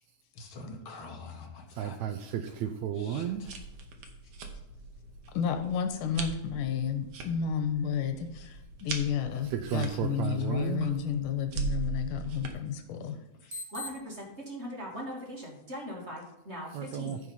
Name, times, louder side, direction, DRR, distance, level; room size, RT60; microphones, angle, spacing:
voice 1, 0.4-2.0 3.0-3.5 10.8-10.9 13.4-13.6, left 3 dB, 50° left, 2 dB, 2.0 m, -46 dB
voice 2, 1.7-3.5 9.4-11.0 16.7-17.2, right 9 dB, 75° right, 7 dB, 1.7 m, -33 dB
sound 1, 3.2-12.5, right 5 dB, 60° right, 2.0 m, -41 dB
voice 3, 5.3-13.2, left 7 dB, 85° left, 7 dB, 2.6 m, -31 dB
voice 4, 13.5-17.2, equal, 25° right, -2 dB, 2.0 m, -40 dB
14.5 x 4.8 x 5.4 m, 0.89 s
omnidirectional pair, 3.6 m